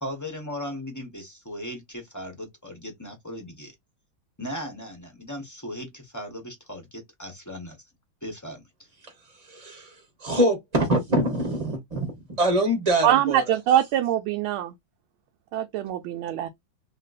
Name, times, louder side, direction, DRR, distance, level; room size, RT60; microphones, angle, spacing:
voice 1, 0.0-3.7 4.4-7.9 8.2-8.9, equal, 20° left, 0.5 m, -37 dB
voice 2, 9.5-9.9 10.2-12.1 12.4-13.4, right 1 dB, 25° right, 0.8 m, -24 dB
voice 3, 13.0-14.7 15.5-16.5, right 11 dB, 85° right, 1.4 m, -23 dB
3.1 x 2.9 x 2.5 m
omnidirectional pair, 2.2 m